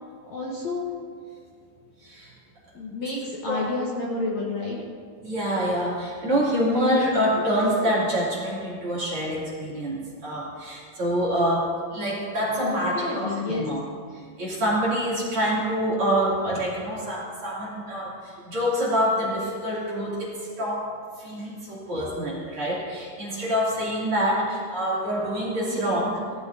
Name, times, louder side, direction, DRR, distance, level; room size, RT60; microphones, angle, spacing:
voice 1, 0.3-1.0 2.7-4.8 12.6-13.7 25.6-25.8, left 3 dB, 60° left, -4 dB, 2.1 m, -30 dB
voice 2, 2.0-2.3 3.5-3.6 5.2-13.8 14.1-20.9 21.2-26.2, equal, 40° right, -7 dB, 3.2 m, -26 dB
18.5 x 13.5 x 2.7 m, 2.1 s
omnidirectional pair, 4.4 m